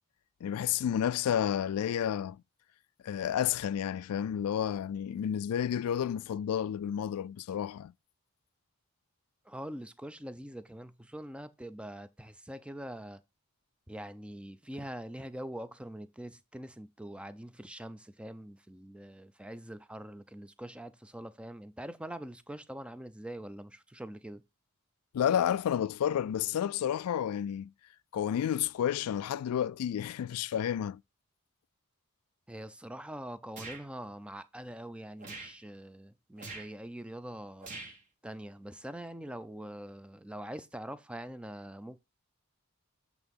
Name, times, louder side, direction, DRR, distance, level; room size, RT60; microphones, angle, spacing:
voice 1, 0.4-2.4 3.0-7.9 25.1-27.7 28.1-31.0, left 9 dB, 80° left, 0.3 m, -31 dB
voice 2, 9.5-13.2 13.9-24.4 32.5-37.7 38.2-42.0, right 1 dB, 5° right, 0.4 m, -44 dB
sound 1, 33.6-33.8 35.2-35.6 36.4-36.7 37.6-38.0, right 3 dB, 35° right, 1.5 m, -43 dB
7.9 x 3.6 x 5.3 m
head